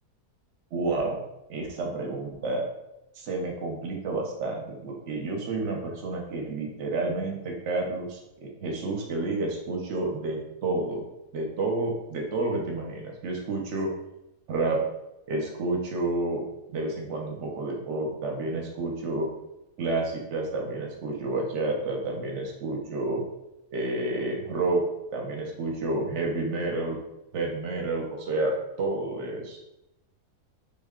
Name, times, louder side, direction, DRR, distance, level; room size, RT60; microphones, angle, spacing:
voice 1, 0.7-1.2 1.5-2.6 3.1-11.0 11.3-13.9 14.5-14.8 15.3-16.4 16.7-19.3 19.8-23.2 23.7-24.8 25.1-27.0 27.3-29.6, right 2 dB, 55° right, 0 dB, 0.9 m, -30 dB
3.7 x 2.2 x 3.6 m, 0.91 s
omnidirectional pair, 1.7 m